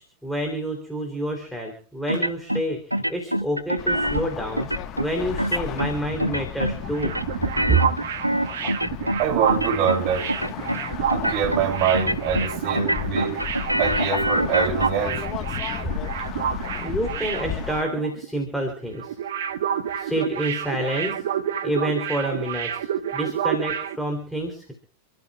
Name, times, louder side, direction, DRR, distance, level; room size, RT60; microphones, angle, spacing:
voice 1, 0.0-4.7 5.0-7.1 7.7-7.8 12.6-12.7 16.8-19.2 20.0-21.2 21.6-24.7, right 1 dB, ahead, 3.5 m, -28 dB
sound 1, 2.1-2.6 2.9-4.2 4.6-5.1 5.4-5.9 6.2-6.8 7.0-9.2 9.5-10.0 10.3-10.8 11.1-11.6 11.9-12.5 12.7-14.9, right 1 dB, 90° right, 0.6 m, -25 dB
sound 2, 3.8-17.8, left 11 dB, 35° left, 1.5 m, -34 dB
sound 3, 6.7-18.3 18.5-18.7 19.0-24.0, right 9 dB, 60° right, 1.3 m, -29 dB
voice 2, 9.2-10.3 11.1-13.4 13.8-15.2, right 7 dB, 40° right, 5.1 m, -24 dB
30.0 x 13.5 x 2.5 m
figure-of-eight pair, 90°, 0 cm